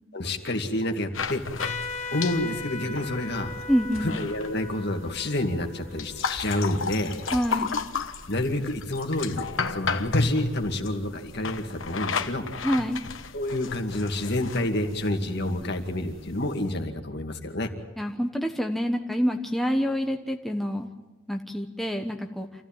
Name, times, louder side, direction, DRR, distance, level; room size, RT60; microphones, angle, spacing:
voice 1, 0.1-1.4 2.1-3.5 4.0-7.2 8.3-12.5 13.3-17.7, left 1 dB, 55° left, 4 dB, 2.3 m, -29 dB
sound 1, 1.1-16.8, left 4 dB, 70° left, 1.2 m, -34 dB
Trumpet, 1.6-6.7, left 4 dB, 35° left, 1.4 m, -38 dB
voice 2, 3.7-4.2 7.3-7.8 12.6-13.0 18.0-20.9 21.3-22.5, equal, ahead, 3 dB, 1.1 m, -27 dB
27.0 x 15.0 x 9.0 m, 1.2 s
head